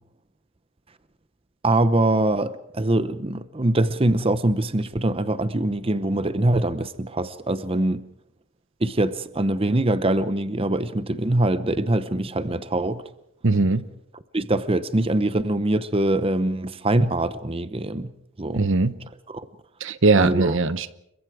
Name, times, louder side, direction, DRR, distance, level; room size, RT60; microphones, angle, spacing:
voice 1, 1.6-8.0 8.8-13.0 14.3-18.1 18.4-18.7 19.3-19.5 20.2-20.6, right 1 dB, 25° right, 0.8 m, -23 dB
voice 2, 13.4-13.9 18.5-19.0 19.8-20.9, right 3 dB, 60° right, 0.9 m, -20 dB
29.5 x 23.0 x 4.9 m
head